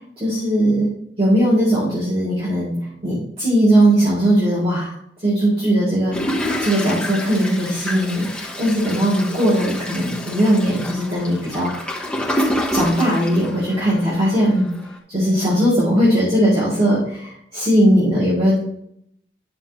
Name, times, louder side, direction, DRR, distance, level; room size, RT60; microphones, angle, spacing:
voice 1, 0.2-4.9 5.2-11.7 12.7-14.7 15.1-18.6, equal, 30° right, -8 dB, 3.2 m, -19 dB
Toilet flush, 6.1-14.2 14.6-14.7 14.9-15.0, left 1 dB, 5° left, 1.1 m, -27 dB
9.5 x 6.3 x 3.1 m, 0.73 s
head